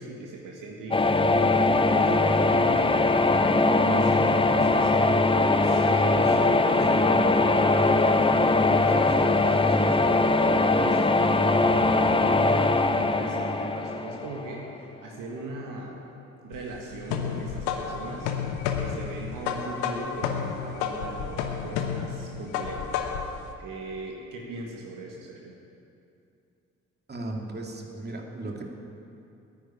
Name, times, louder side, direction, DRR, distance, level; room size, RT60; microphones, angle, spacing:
voice 1, 0.0-8.3 8.7-11.0 11.3-16.1 16.4-18.5 18.8-23.0 23.6-25.5, right 2 dB, 60° right, -1 dB, 1.8 m, -39 dB
sound 1, 0.9-14.7, left 2 dB, 15° left, 0.8 m, -21 dB
sound 2, 16.5-23.4, left 7 dB, 75° left, 1.1 m, -31 dB
voice 2, 27.1-28.7, right 2 dB, 25° right, 0 dB, 2.4 m, -36 dB
9.9 x 9.3 x 9.9 m, 2.6 s
hypercardioid pair, 50°, 37 cm